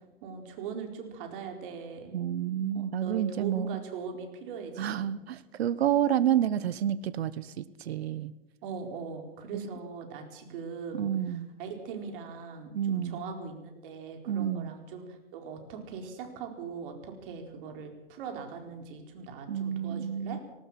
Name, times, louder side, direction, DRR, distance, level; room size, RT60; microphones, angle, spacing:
voice 1, 0.2-2.2 3.0-5.1 8.6-20.4, right 5 dB, 60° right, 4 dB, 4.7 m, -40 dB
voice 2, 2.1-3.8 4.8-8.3 10.9-11.5 12.7-13.2 14.3-14.7 19.5-20.4, right 10 dB, 85° right, 17 dB, 1.1 m, -29 dB
19.0 x 18.5 x 7.6 m, 0.97 s
hypercardioid pair, 125°, 31 cm